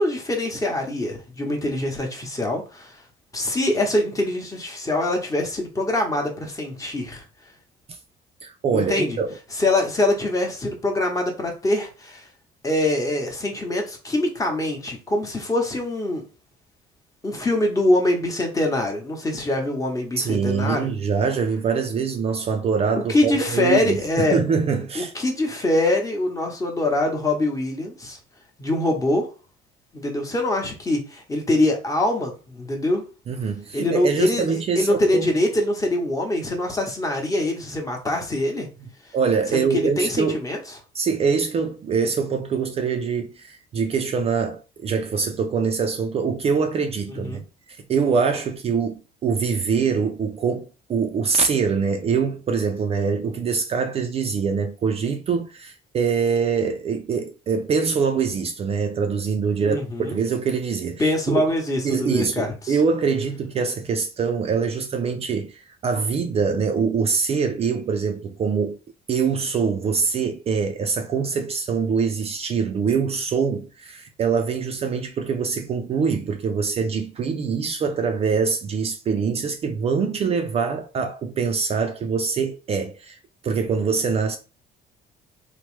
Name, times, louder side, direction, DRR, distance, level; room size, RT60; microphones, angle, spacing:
voice 1, 0.0-2.9 3.3-7.2 8.7-9.2 9.6-12.2 12.6-16.2 17.2-20.9 23.1-24.4 24.9-28.2 28.6-29.3 29.9-33.0 33.7-34.5 34.8-38.7 39.5-40.6 47.1-47.4 59.5-60.2 61.0-62.8, left 1 dB, 20° left, 0.9 m, -24 dB
voice 2, 8.4-9.3 20.2-25.1 33.3-35.3 39.1-40.4 40.9-47.4 47.7-61.4 61.8-68.8 69.1-83.2 83.4-84.4, right 5 dB, 35° right, 0.4 m, -24 dB
3.0 x 2.1 x 3.0 m
cardioid pair, 110°, 17 cm